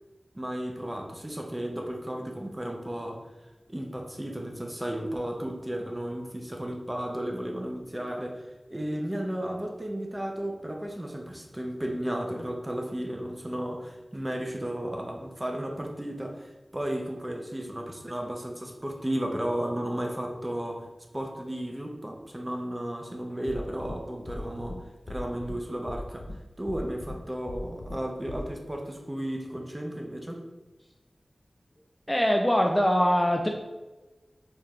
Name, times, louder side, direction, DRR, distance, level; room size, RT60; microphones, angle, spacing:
voice 1, 0.3-3.3 3.7-20.9 21.1-26.3 26.6-30.4, right 1 dB, 20° right, 1 dB, 0.7 m, -34 dB
sound 1, 23.5-23.9 24.3-24.7 25.1-25.5 25.9-26.3 26.7-27.1 27.5-28.0 28.3-28.4, left 1 dB, 85° left, 0.3 m, -39 dB
voice 2, 32.1-33.5, equal, 10° left, 1 dB, 0.3 m, -22 dB
4.4 x 3.2 x 2.5 m, 1.1 s
wide cardioid pair, 65°, 0 cm